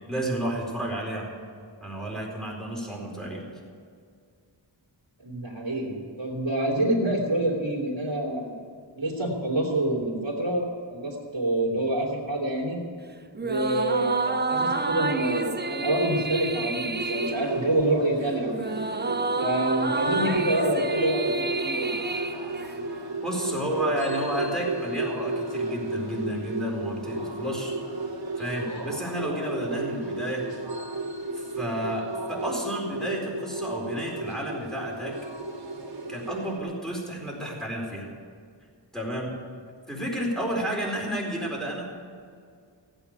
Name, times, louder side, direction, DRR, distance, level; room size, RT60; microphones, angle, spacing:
voice 1, 0.1-1.3 1.8-3.4 23.2-27.7 28.3-30.4 31.3-35.2 36.1-38.1 38.9-39.3 39.9-41.9, right 1 dB, ahead, -2 dB, 4.4 m, -31 dB
voice 2, 5.2-8.6 8.9-12.8 13.4-18.7 19.4-21.9, right 1 dB, 70° right, -3 dB, 3.2 m, -27 dB
sound 1, 13.3-23.1, right 3 dB, 25° right, 0.6 m, -30 dB
sound 2, 16.9-36.6, right 2 dB, 55° right, 2.9 m, -34 dB
15.5 x 8.9 x 8.1 m, 2.2 s
wide cardioid pair, 60°, 46 cm